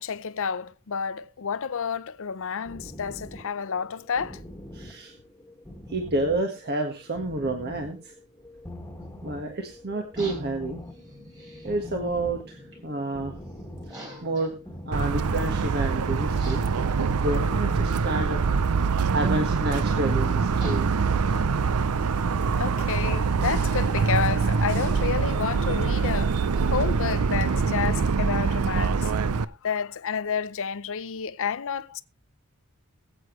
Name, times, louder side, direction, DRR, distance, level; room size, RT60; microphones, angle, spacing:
voice 1, 0.0-4.4 22.5-29.1 29.4-32.0, left 6 dB, 65° left, 0.6 m, -30 dB
sound 1, 2.6-20.1, left 1 dB, 10° left, 1.7 m, -43 dB
voice 2, 4.7-5.1 5.9-8.1 9.2-10.8 11.6-13.3 13.9-14.5 14.9-16.6 17.2-18.5 19.1-21.0, right 2 dB, 45° right, 1.5 m, -29 dB
sound 2, 10.1-28.2, equal, 20° right, 4.1 m, -48 dB
Motor vehicle (road) / Siren, 14.9-29.4, right 5 dB, 80° right, 0.6 m, -24 dB
21.5 x 8.2 x 3.1 m
head